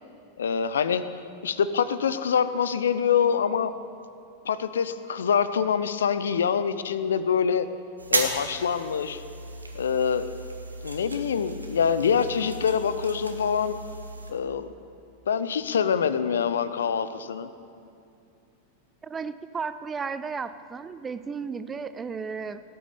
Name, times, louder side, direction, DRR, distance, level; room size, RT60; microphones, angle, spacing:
voice 1, 0.4-1.0 1.4-3.7 4.4-7.7 8.1-9.2 9.7-10.3 10.8-13.8 14.3-14.7 15.3-17.5, left 7 dB, 65° left, 13 dB, 0.6 m, -25 dB
sound 1, 8.0-14.3, right 2 dB, 80° right, 1.4 m, -34 dB
voice 2, 19.0-22.6, right 5 dB, 20° right, 13 dB, 0.6 m, -34 dB
17.0 x 9.3 x 7.0 m, 2.5 s
figure-of-eight pair, 90°, 0 cm